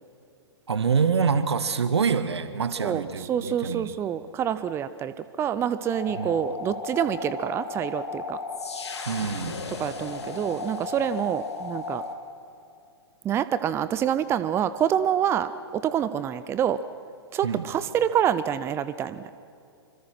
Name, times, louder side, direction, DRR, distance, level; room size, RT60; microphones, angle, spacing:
voice 1, 0.7-3.9 6.1-6.4 9.1-9.6 17.4-17.6, right 6 dB, 75° right, 12 dB, 1.6 m, -26 dB
voice 2, 2.8-8.4 9.8-12.0 13.2-16.8 17.3-19.3, right 9 dB, 20° right, 14 dB, 0.6 m, -27 dB
sound 1, 5.9-12.2, left 4 dB, 75° left, 2.6 m, -35 dB
26.5 x 25.0 x 6.0 m, 2.5 s
figure-of-eight pair, 115°, 14 cm